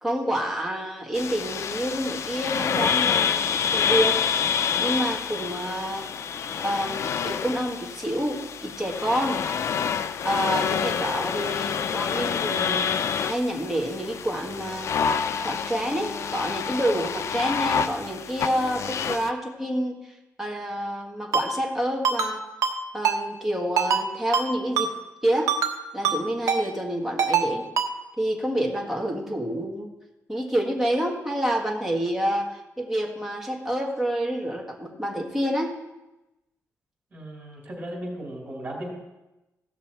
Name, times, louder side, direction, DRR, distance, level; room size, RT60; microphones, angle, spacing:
voice 1, 0.0-4.2 4.8-6.1 6.6-9.4 10.2-12.9 13.2-14.9 15.4-22.4 22.9-24.9 25.2-25.5 25.9-27.7 28.2-29.9 30.3-35.8, equal, 5° right, -1 dB, 1.7 m, -28 dB
sound 1, 1.1-19.3, left 7 dB, 55° left, 0.4 m, -27 dB
Ringtone, 21.3-21.5 22.0-22.3 22.6-22.8 23.0-23.2 23.8-24.0 24.3-24.5 24.8-24.9 25.5-25.7 26.0-26.2 26.5-26.6 27.2-27.5 27.8-27.9, right 6 dB, 85° right, 1.1 m, -23 dB
voice 2, 37.1-38.9, right 1 dB, 35° right, -2 dB, 4.0 m, -36 dB
16.5 x 6.0 x 4.4 m, 1.0 s
wide cardioid pair, 165°, 6 cm